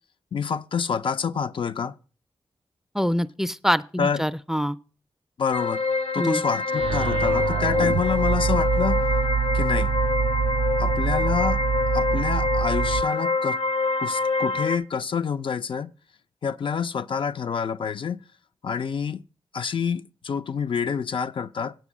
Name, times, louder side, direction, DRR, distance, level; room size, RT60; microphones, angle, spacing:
voice 1, 0.3-1.9 4.0-4.2 5.4-5.8 6.1-9.0 9.5-10.0 10.8-11.6 11.9-13.6 14.0-15.9 16.4-18.2 18.6-19.2 19.5-21.7, left 6 dB, 60° left, 0.4 m, -27 dB
voice 2, 2.9-4.8 6.2-6.4, equal, 5° right, 0.4 m, -25 dB
sound 1, 5.5-14.8, left 3 dB, 80° left, 1.0 m, -25 dB
sound 2, 6.7-13.0, right 7 dB, 75° right, 0.4 m, -25 dB
9.2 x 4.6 x 7.2 m
cardioid pair, 60°, 10 cm